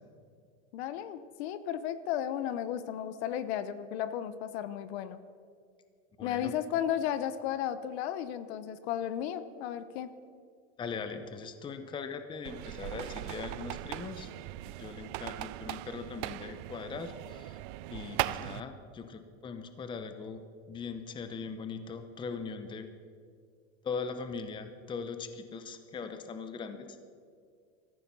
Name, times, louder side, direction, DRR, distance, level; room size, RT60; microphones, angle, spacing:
voice 1, 0.7-5.2 6.2-10.1, left 10 dB, 60° left, 13 dB, 1.0 m, -34 dB
voice 2, 6.2-6.5 10.8-14.3 14.8-17.6 17.9-20.4 20.7-22.9 23.8-27.0, left 5 dB, 15° left, 9 dB, 0.7 m, -40 dB
sound 1, 12.4-18.6, right 17 dB, 45° right, 0.5 m, -39 dB
15.5 x 14.0 x 5.5 m, 2.2 s
supercardioid pair, 145°, 36 cm